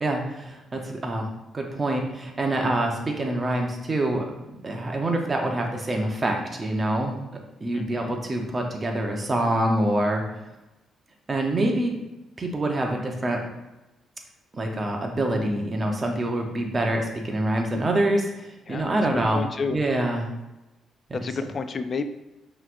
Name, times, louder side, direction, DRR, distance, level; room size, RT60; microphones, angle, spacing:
voice 1, 0.0-1.3 1.5-7.2 7.6-10.2 11.3-11.9 12.4-13.4 14.5-19.4 19.7-20.3 21.1-21.2, right 1 dB, 30° right, 2 dB, 0.8 m, -26 dB
voice 2, 7.7-8.2 18.7-19.0 19.3-19.8 21.2-22.1, left 4 dB, 45° left, 10 dB, 0.3 m, -30 dB
5.5 x 3.1 x 2.5 m, 0.99 s
cardioid pair, 90°, 0 cm